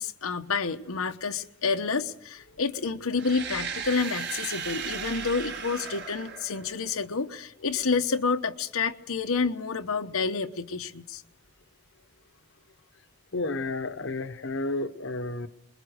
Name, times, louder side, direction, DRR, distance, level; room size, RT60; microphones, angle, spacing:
voice 1, 0.0-11.2, left 4 dB, 80° left, 1.1 m, -29 dB
sound 1, 3.1-7.1, right 6 dB, 50° right, 3.6 m, -36 dB
voice 2, 13.3-15.5, left 2 dB, 55° left, 1.0 m, -32 dB
26.5 x 22.0 x 6.5 m
head